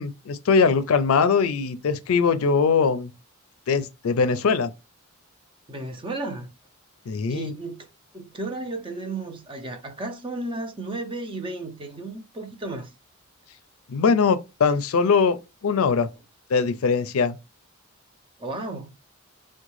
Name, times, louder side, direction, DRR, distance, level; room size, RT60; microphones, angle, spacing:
voice 1, 0.0-3.1 3.7-4.7 7.1-7.5 13.9-15.4 15.6-16.1 16.5-17.4, left 5 dB, 85° left, 0.4 m, -21 dB
voice 2, 5.7-6.5 7.1-7.9 8.1-12.9 18.4-18.9, right 2 dB, 25° right, 0.5 m, -33 dB
3.5 x 2.2 x 3.1 m
head